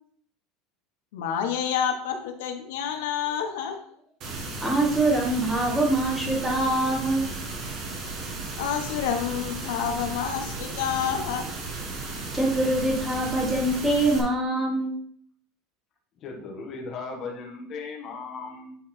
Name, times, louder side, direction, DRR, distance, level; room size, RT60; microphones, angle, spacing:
voice 1, 1.1-3.8 8.6-11.5, left 8 dB, 90° left, 5 dB, 1.2 m, -28 dB
sound 1, 4.2-14.2, right 3 dB, 35° right, 1.7 m, -35 dB
voice 2, 4.6-7.2 12.3-14.9, right 1 dB, 5° right, -3 dB, 1.7 m, -24 dB
voice 3, 16.2-18.7, left 4 dB, 30° left, -1 dB, 1.5 m, -37 dB
9.1 x 4.0 x 4.3 m, 0.63 s
cardioid pair, 170°, 0 cm